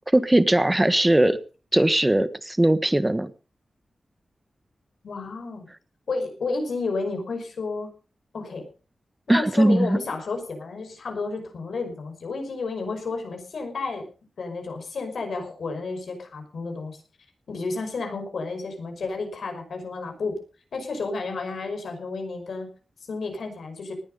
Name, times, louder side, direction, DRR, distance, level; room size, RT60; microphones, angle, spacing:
voice 1, 0.1-1.4 1.7-3.3 9.3-10.0, right 1 dB, 20° right, 13 dB, 1.3 m, -19 dB
voice 2, 5.0-5.7 6.1-7.9 8.3-8.7 9.3-14.0 14.4-17.0 17.5-20.4 20.7-22.7 23.1-23.9, left 3 dB, 85° left, 4 dB, 5.4 m, -31 dB
19.5 x 11.0 x 5.2 m, 0.37 s
cardioid pair, 60°, 0 cm